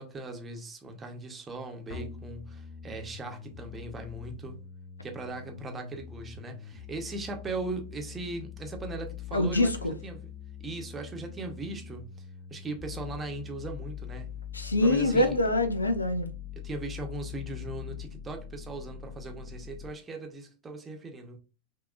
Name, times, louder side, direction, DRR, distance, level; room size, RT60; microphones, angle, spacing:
voice 1, 0.0-4.6 5.0-10.3 10.6-12.1 12.5-14.4 14.8-15.4 16.6-21.4, right 2 dB, 20° right, 1.0 m, -39 dB
sound 1, 1.9-19.9, left 9 dB, 35° left, 1.0 m, -43 dB
voice 2, 9.3-9.9 14.5-16.3, left 1 dB, 80° left, 0.6 m, -25 dB
6.0 x 2.8 x 2.5 m
figure-of-eight pair, 90°, 0 cm